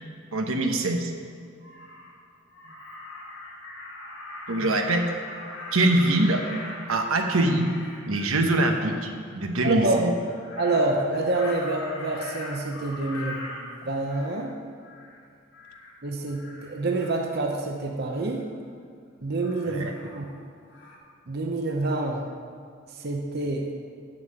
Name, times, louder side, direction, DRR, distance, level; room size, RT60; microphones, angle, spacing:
voice 1, 0.3-1.1 4.5-5.1 5.7-6.4 6.9-7.7 8.1-10.1 19.6-19.9, right 2 dB, 85° right, 4 dB, 1.0 m, -23 dB
Crow, 1.1-1.2 1.6-2.1 2.5-8.6 10.1-14.5 14.8-15.2 15.5-15.9 16.3-17.3 18.1-18.4 19.4-20.4 20.7-21.0, left 1 dB, 60° left, 1.7 m, -41 dB
voice 2, 9.6-10.0 10.6-14.6 16.0-18.5 19.2-20.2 21.3-22.2 23.0-23.7, right 2 dB, 50° right, 1 dB, 0.8 m, -27 dB
7.5 x 7.4 x 7.8 m, 2.3 s
head